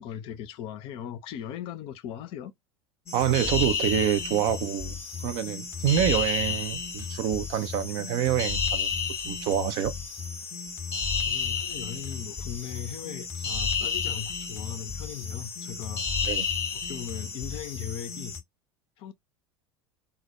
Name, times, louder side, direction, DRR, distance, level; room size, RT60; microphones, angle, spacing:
voice 1, 0.0-2.5 11.2-16.5 16.7-18.4 19.0-19.1, left 9 dB, 40° left, 0.4 m, -39 dB
sound 1, 3.1-18.4, left 6 dB, 20° left, 0.8 m, -32 dB
voice 2, 3.1-5.0 5.2-8.9 9.3-9.9 16.3-16.5, right 10 dB, 45° right, 0.4 m, -26 dB
2.1 x 2.1 x 2.8 m
figure-of-eight pair, 75°, 14 cm